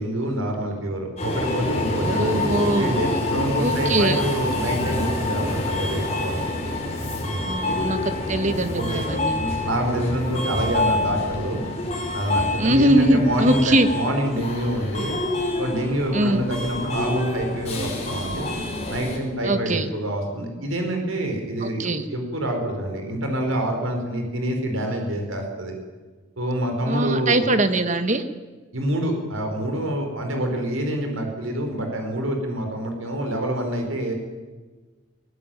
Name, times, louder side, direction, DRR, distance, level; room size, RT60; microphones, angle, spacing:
voice 1, 0.0-6.4 7.2-7.4 8.7-9.0 9.4-11.6 12.1-15.2 15.6-18.5 18.9-25.7 26.4-27.4 28.7-34.1, right 1 dB, 85° right, 3 dB, 4.9 m, -26 dB
Subway metro underground, 1.2-19.2, left 2 dB, 30° left, 5.7 m, -27 dB
voice 2, 2.0-3.0 3.6-4.2 7.5-9.4 12.6-13.9 16.1-16.4 19.4-19.8 21.6-22.0 26.9-28.2, right 1 dB, 35° right, 9 dB, 1.5 m, -21 dB
22.5 x 17.5 x 9.2 m, 1.3 s
head